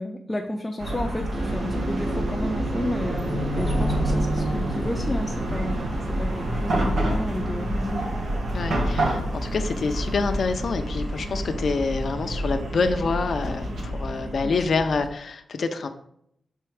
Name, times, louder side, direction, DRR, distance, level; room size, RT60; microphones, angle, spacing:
voice 1, 0.0-8.1 14.4-14.6, left 1 dB, 15° left, 2 dB, 0.6 m, -32 dB
Chatter / Car passing by / Traffic noise roadway noise, 0.8-15.1, right 1 dB, 80° right, 1.7 m, -28 dB
sound 1, 1.3-9.0, right 3 dB, 65° right, 2.4 m, -35 dB
voice 2, 8.5-15.9, left 4 dB, 60° left, 6 dB, 0.6 m, -27 dB
6.0 x 4.5 x 4.8 m, 0.70 s
wide cardioid pair, 140°, 0 cm